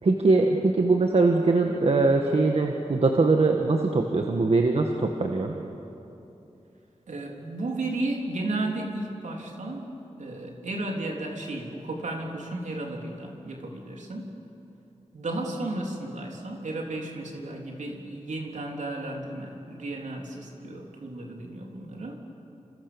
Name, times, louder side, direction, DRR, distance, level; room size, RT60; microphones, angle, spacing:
voice 1, 0.0-5.5, right 3 dB, 55° right, 3 dB, 1.7 m, -22 dB
voice 2, 7.1-9.9 10.2-14.3 15.1-22.2, right 2 dB, 85° right, 0 dB, 3.7 m, -33 dB
29.5 x 27.0 x 7.1 m, 2.9 s
wide cardioid pair, 95°, 12 cm